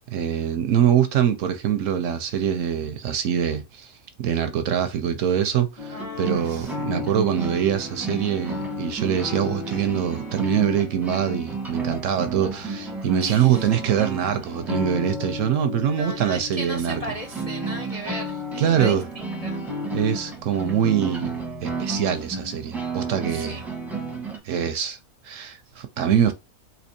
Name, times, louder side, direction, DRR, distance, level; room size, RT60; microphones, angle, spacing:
voice 1, 0.1-3.9 4.2-17.0 18.6-19.0 19.9-23.6 24.4-25.0 25.2-26.3, right 9 dB, 70° right, 0.8 m, -24 dB
sound 1, 5.8-24.4, right 1 dB, ahead, 0.7 m, -32 dB
voice 2, 5.9-6.7 13.2-13.8 15.8-19.6 23.3-23.7, right 1 dB, 55° left, 0.4 m, -36 dB
4.3 x 2.8 x 2.6 m
omnidirectional pair, 1.6 m